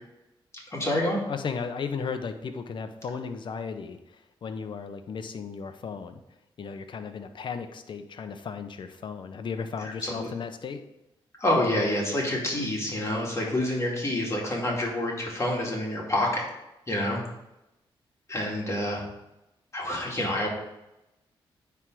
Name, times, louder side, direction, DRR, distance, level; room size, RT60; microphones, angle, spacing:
voice 1, 0.7-1.2 9.8-10.3 11.4-16.4 16.9-17.2 18.3-19.0 19.7-20.5, left 1 dB, 30° left, -3 dB, 2.4 m, -27 dB
voice 2, 1.3-4.0 4.4-6.2 6.6-10.9, left 5 dB, 60° left, 8 dB, 0.8 m, -35 dB
9.4 x 3.5 x 6.2 m, 0.92 s
cardioid pair, 85°, 9 cm